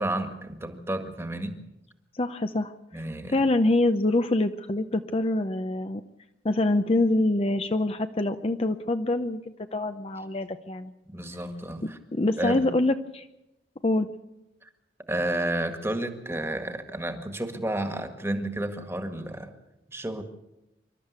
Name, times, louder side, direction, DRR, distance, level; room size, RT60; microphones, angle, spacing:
voice 1, 0.0-1.6 2.9-3.4 11.1-12.0 12.4-12.6 14.6-14.7 15.1-19.5 19.9-20.2, right 1 dB, 15° right, 7 dB, 1.8 m, -31 dB
voice 2, 2.1-2.7 3.3-6.0 6.4-9.4 9.7-10.9 11.8-13.3 13.8-14.1, left 2 dB, 35° left, 8 dB, 0.7 m, -25 dB
26.0 x 12.5 x 8.2 m, 0.92 s
head